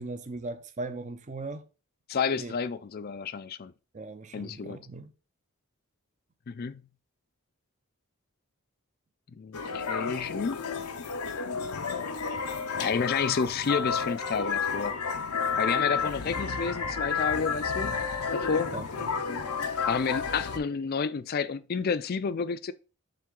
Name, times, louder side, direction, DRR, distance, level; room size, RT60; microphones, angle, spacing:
voice 1, 0.0-1.6 2.4-2.5 3.9-5.1 18.7-19.1, right 2 dB, 35° right, 0.5 m, -38 dB
voice 2, 2.1-3.7 4.3-4.8 6.5-6.8 9.4-10.6 12.7-15.0 15.6-18.0 18.3-18.7 19.9-22.7, left 5 dB, 45° left, 0.4 m, -30 dB
sound 1, 9.5-20.6, left 5 dB, 90° left, 0.7 m, -31 dB
7.5 x 3.4 x 3.7 m
head